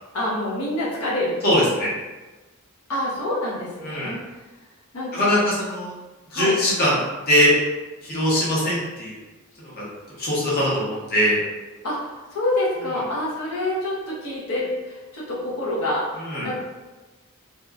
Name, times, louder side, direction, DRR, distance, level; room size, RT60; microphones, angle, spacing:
voice 1, 0.1-1.7 2.9-4.4 4.9-5.4 6.3-6.6 11.8-16.1 16.4-16.6, left 1 dB, 85° left, -6 dB, 0.7 m, -27 dB
voice 2, 1.4-1.9 3.8-4.2 5.1-5.9 6.3-7.0 7.3-7.5 8.1-9.1 9.8-9.9 10.2-11.4 16.3-16.5, equal, 45° left, -6 dB, 0.8 m, -21 dB
2.8 x 2.2 x 2.3 m, 1.2 s
head